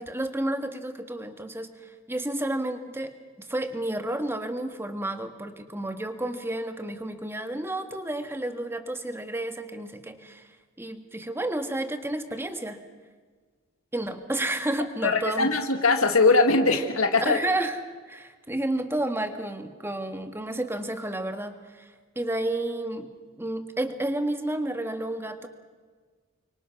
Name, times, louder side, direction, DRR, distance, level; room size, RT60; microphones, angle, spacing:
voice 1, 0.0-3.1 3.5-10.5 10.8-12.8 13.9-15.5 17.2-17.8 18.1-23.1 23.4-25.5, right 1 dB, 10° right, 7 dB, 1.7 m, -31 dB
voice 2, 15.0-17.4, left 3 dB, 85° left, 4 dB, 1.9 m, -21 dB
30.0 x 24.5 x 6.1 m, 1.5 s
head